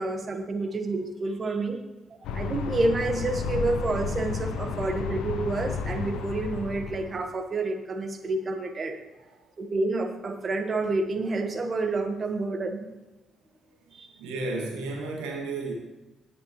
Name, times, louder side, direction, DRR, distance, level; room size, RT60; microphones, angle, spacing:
voice 1, 0.0-1.8 2.3-9.0 9.6-12.9 13.9-14.1, right 2 dB, 45° right, 6 dB, 1.4 m, -29 dB
sound 1, 2.2-7.2, left 5 dB, 70° left, 0.7 m, -32 dB
voice 2, 14.2-15.7, right 3 dB, 75° right, -1 dB, 2.0 m, -32 dB
17.5 x 6.8 x 3.2 m, 1.1 s
hypercardioid pair, 40°, 0 cm